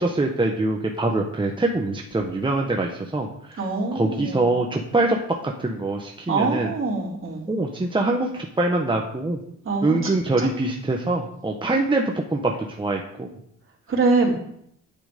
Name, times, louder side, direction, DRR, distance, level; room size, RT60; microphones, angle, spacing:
voice 1, 0.0-3.7 3.9-5.2 5.4-6.7 7.5-9.4 9.8-12.5 12.8-13.3, right 2 dB, 15° right, 1 dB, 1.3 m, -24 dB
voice 2, 3.6-4.5 6.3-7.5 9.6-10.5 13.9-14.3, right 3 dB, 45° right, -1 dB, 3.7 m, -24 dB
9.0 x 8.8 x 5.3 m, 0.70 s
cardioid pair, 90°, 30 cm